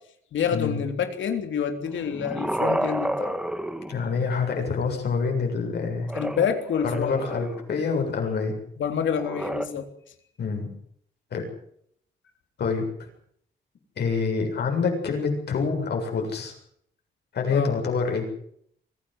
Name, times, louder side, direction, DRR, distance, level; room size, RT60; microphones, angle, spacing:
voice 1, 0.3-3.4 6.1-7.2 8.8-9.9 17.5-17.7, left 7 dB, 80° left, 6 dB, 3.5 m, -27 dB
sound 1, 1.9-4.5 6.0-7.8 9.2-9.7, right 1 dB, 5° right, 1.7 m, -31 dB
voice 2, 3.9-6.1 6.8-8.5 10.4-10.7 11.3-11.4 12.6-13.1 14.0-16.5 17.3-18.2, left 5 dB, 60° left, 2 dB, 7.5 m, -26 dB
24.5 x 16.5 x 8.0 m, 0.67 s
wide cardioid pair, 160°, 19 cm